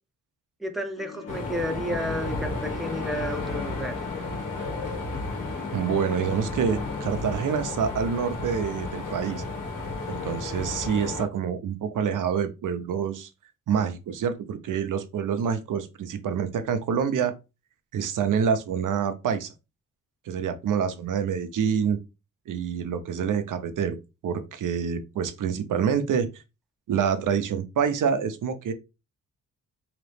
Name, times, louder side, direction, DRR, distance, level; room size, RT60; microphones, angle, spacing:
voice 1, 0.6-4.5, equal, ahead, 0.7 m, -32 dB
sound 1, 1.0-7.0, left 6 dB, 50° left, 0.6 m, -43 dB
sound 2, 1.3-11.2, left 3 dB, 85° left, 1.4 m, -33 dB
voice 2, 5.7-9.4 10.1-13.3 13.7-17.3 17.9-19.5 20.3-22.0 22.5-24.0 24.2-26.3 26.9-28.7, right 7 dB, 80° right, 0.7 m, -27 dB
4.0 x 2.9 x 3.3 m
wide cardioid pair, 140°, 31 cm